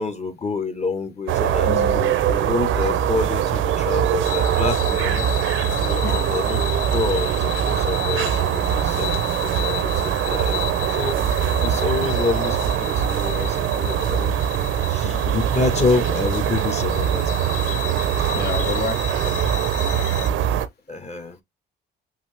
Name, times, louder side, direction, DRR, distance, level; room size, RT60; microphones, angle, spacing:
voice 1, 0.0-1.7 2.3-5.3 5.7-7.3 7.7-17.5 20.9-21.4, left 3 dB, 35° left, 1.4 m, -28 dB
sound 1, 1.3-20.7, right 10 dB, 80° right, 0.7 m, -22 dB
voice 2, 1.7-2.4 6.0-6.4 11.2-11.3 11.7-11.8 15.0-15.4 18.3-19.0, left 7 dB, 55° left, 1.3 m, -30 dB
sound 2, 4.2-20.3, left 13 dB, 85° left, 0.7 m, -34 dB
5.6 x 2.8 x 3.3 m
cardioid pair, 90°, 20 cm